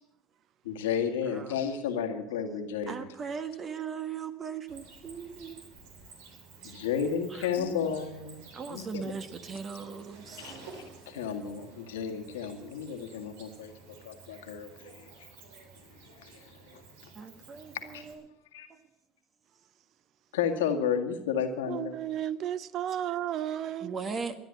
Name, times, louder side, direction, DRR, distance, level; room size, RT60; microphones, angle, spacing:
voice 1, 0.6-2.9 6.6-8.4 8.7-9.0 10.4-10.5 11.1-13.7 14.0-15.1 16.2-16.3 16.7-16.8 17.9-18.0 18.5-18.7 20.3-21.9, left 7 dB, 85° left, 1.8 m, -32 dB
voice 2, 1.3-1.6 2.9-5.6 6.6-6.7 7.3-8.0 8.5-10.6 17.1-18.2 23.6-24.3, right 6 dB, 40° right, 1.4 m, -39 dB
Cricket, 4.7-18.1, right 4 dB, 80° right, 3.4 m, -52 dB
voice 3, 21.7-23.9, right 11 dB, 55° right, 0.6 m, -33 dB
13.5 x 10.0 x 9.0 m
hypercardioid pair, 80°, 0 cm